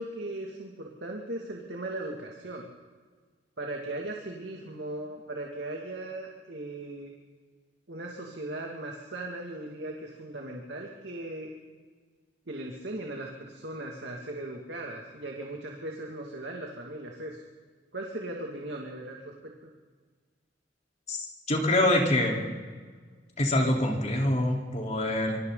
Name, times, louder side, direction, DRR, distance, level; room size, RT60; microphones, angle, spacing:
voice 1, 0.0-2.7 3.6-7.1 7.9-11.5 12.5-17.4 17.9-19.7, right 1 dB, 70° right, -1 dB, 2.5 m, -38 dB
voice 2, 21.1-22.4 23.4-25.4, left 1 dB, 40° left, -1 dB, 4.1 m, -25 dB
26.0 x 25.5 x 4.1 m, 1.5 s
head